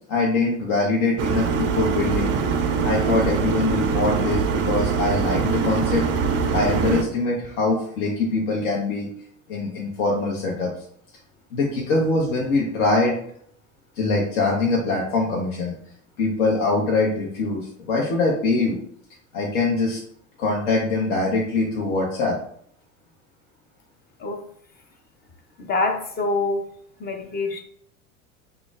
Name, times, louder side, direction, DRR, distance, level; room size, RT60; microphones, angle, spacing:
voice 1, 0.1-2.4 2.8-6.0 6.5-9.1 9.5-10.7 11.5-13.2 14.0-15.7 16.2-18.8 19.3-20.0 20.4-22.4, left 3 dB, 60° left, -3 dB, 0.9 m, -23 dB
sound 1, 1.2-7.0, right 6 dB, 30° right, 0.4 m, -23 dB
voice 2, 25.6-26.6 27.0-27.6, left 3 dB, 25° left, 5 dB, 0.6 m, -25 dB
5.0 x 2.3 x 2.4 m, 0.66 s
hypercardioid pair, 80°, 41 cm